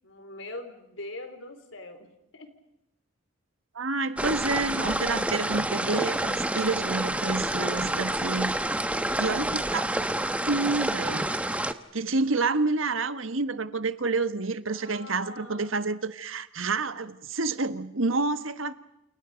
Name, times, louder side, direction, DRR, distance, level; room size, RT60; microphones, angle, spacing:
voice 1, 0.0-2.5 14.7-16.0, left 2 dB, 80° left, 4.4 m, -42 dB
voice 2, 3.7-8.5 9.2-9.9 10.5-11.3 11.9-18.7, right 3 dB, 90° right, 1.5 m, -28 dB
sound 1, 4.2-11.7, right 1 dB, 5° right, 1.1 m, -28 dB
29.5 x 29.0 x 5.2 m
head